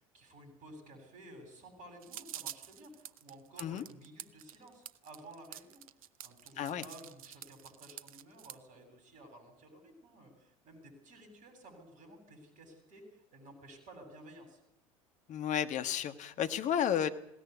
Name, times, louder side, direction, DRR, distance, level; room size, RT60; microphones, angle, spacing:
voice 1, 0.0-14.6, right 1 dB, 45° right, 3 dB, 7.8 m, -54 dB
sound 1, 2.0-8.6, right 11 dB, 75° right, 0.8 m, -47 dB
voice 2, 15.3-17.1, left 9 dB, 40° left, 9 dB, 1.5 m, -32 dB
20.5 x 17.5 x 8.4 m, 0.79 s
figure-of-eight pair, 75°, 18 cm